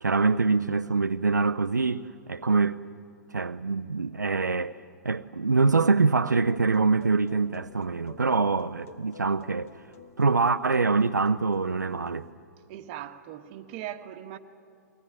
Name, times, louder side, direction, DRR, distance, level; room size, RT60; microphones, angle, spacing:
voice 1, 0.0-2.8 3.3-4.7 5.0-9.7 10.2-12.3, right 4 dB, 85° right, 0.6 m, -24 dB
sound 1, 6.5-12.3, left 6 dB, 55° left, 1.4 m, -51 dB
voice 2, 12.7-14.4, right 11 dB, 40° right, 1.4 m, -39 dB
22.5 x 18.5 x 9.7 m
figure-of-eight pair, 115°, 9 cm